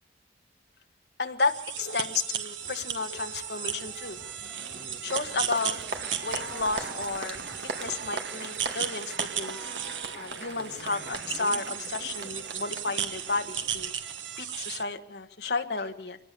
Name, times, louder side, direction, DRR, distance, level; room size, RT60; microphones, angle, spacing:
voice 1, 1.2-4.2 5.0-5.8 6.2-7.4 7.8-9.6 10.1-13.9 14.4-16.2, left 4 dB, 65° left, 6 dB, 1.5 m, -32 dB
sound 1, 1.4-14.8, right 9 dB, 90° right, 1.3 m, -36 dB
sound 2, 2.6-8.1, right 4 dB, 45° right, 1.5 m, -49 dB
Applause, 3.8-13.9, right 3 dB, 70° right, 1.8 m, -40 dB
23.5 x 18.5 x 6.8 m, 0.66 s
head